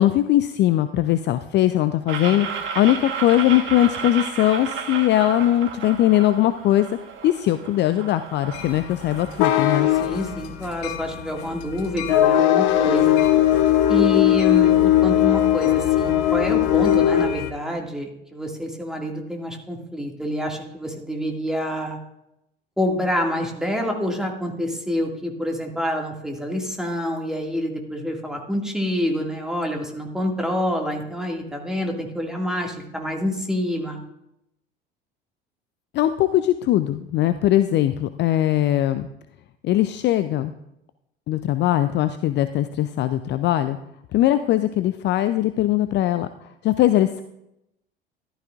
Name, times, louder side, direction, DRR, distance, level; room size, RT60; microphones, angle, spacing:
voice 1, 0.0-2.5 2.8-6.9 7.2-9.9 35.9-39.1 39.6-40.5 41.3-43.8 44.1-46.3 46.6-47.2, left 13 dB, 35° left, 11 dB, 0.5 m, -20 dB
sound 1, 2.1-9.6, right 6 dB, 40° right, 1.5 m, -33 dB
sound 2, 8.5-17.5, left 12 dB, 55° left, 0.9 m, -19 dB
voice 2, 9.9-13.2 13.9-22.0 22.8-34.0, left 1 dB, ahead, 1 dB, 2.2 m, -27 dB
14.5 x 12.0 x 2.5 m, 0.84 s
figure-of-eight pair, 65°, 30 cm